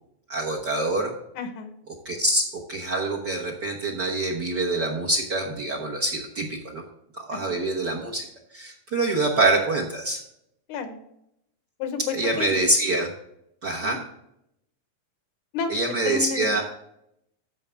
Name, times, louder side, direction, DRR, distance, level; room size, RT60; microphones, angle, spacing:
voice 1, 0.3-1.1 2.0-6.8 7.1-8.3 8.5-10.2 12.1-13.1 13.6-14.0 15.7-16.6, right 2 dB, 55° right, 1 dB, 1.2 m, -25 dB
voice 2, 1.4-1.7 7.3-7.6 10.7-11.0 11.8-12.5 13.8-14.0 15.5-15.7 16.0-16.6, left 5 dB, 85° left, 7 dB, 2.6 m, -31 dB
14.0 x 5.5 x 3.4 m, 0.78 s
omnidirectional pair, 3.4 m